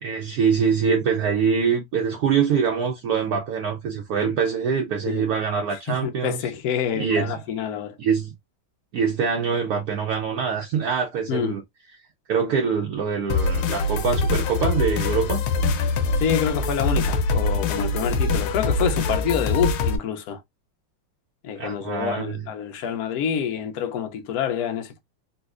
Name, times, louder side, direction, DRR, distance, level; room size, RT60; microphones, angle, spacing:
voice 1, 0.0-6.4 6.9-7.3 8.0-8.3 8.9-11.6 12.3-15.4 21.6-22.3, right 6 dB, 70° right, 0.9 m, -24 dB
voice 2, 5.7-8.0 11.3-11.6 16.2-20.4 21.4-25.0, left 8 dB, 70° left, 0.9 m, -27 dB
sound 1, 13.3-20.0, left 3 dB, 85° left, 1.5 m, -23 dB
4.1 x 2.4 x 2.4 m
omnidirectional pair, 2.3 m